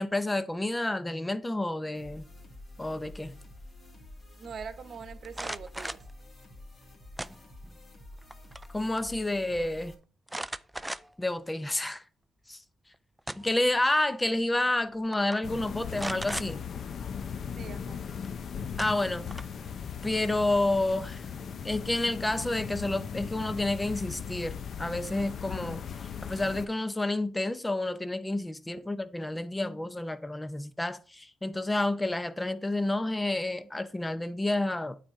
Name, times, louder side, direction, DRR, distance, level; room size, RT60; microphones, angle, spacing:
voice 1, 0.0-2.2 2.8-3.4 8.7-9.9 11.2-12.0 12.5-12.6 13.4-16.6 18.8-19.3 20.0-21.2 21.6-25.8 26.2-35.0, left 2 dB, 15° left, 0.7 m, -29 dB
sound 1, 1.9-9.9, left 1 dB, 30° left, 2.6 m, -49 dB
voice 2, 4.4-6.0 17.6-18.0, right 6 dB, 55° right, 1.0 m, -42 dB
sound 2, 5.2-6.1 7.2-7.8 8.2-8.7 9.0-9.1 10.3-11.3 11.8-11.9 12.9-13.7 14.7-14.8 15.1-15.4 15.9-16.5 18.2-18.3 18.8-19.6, right 1 dB, 10° right, 0.4 m, -38 dB
sound 3, 15.4-26.7, left 7 dB, 55° left, 0.6 m, -38 dB
8.8 x 4.2 x 4.8 m
cardioid pair, 90°, 0 cm